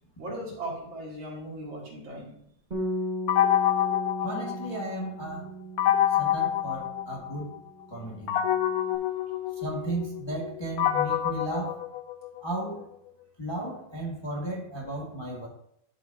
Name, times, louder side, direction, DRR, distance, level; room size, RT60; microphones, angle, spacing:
voice 1, 0.2-2.3 9.0-9.2, right 1 dB, 75° right, -4 dB, 3.4 m, -38 dB
Bass guitar, 2.7-7.4 7.7-9.0, equal, 20° right, 2.0 m, -37 dB
sound 1, 3.3-5.1 5.8-7.6 8.3-12.5, left 11 dB, 75° left, 0.9 m, -27 dB
voice 2, 4.2-5.6 6.2-7.5 7.9-8.4 9.6-11.8 12.4-12.9 13.4-15.5, right 1 dB, 15° left, -3 dB, 1.5 m, -34 dB
12.0 x 6.5 x 2.7 m, 0.71 s
omnidirectional pair, 2.2 m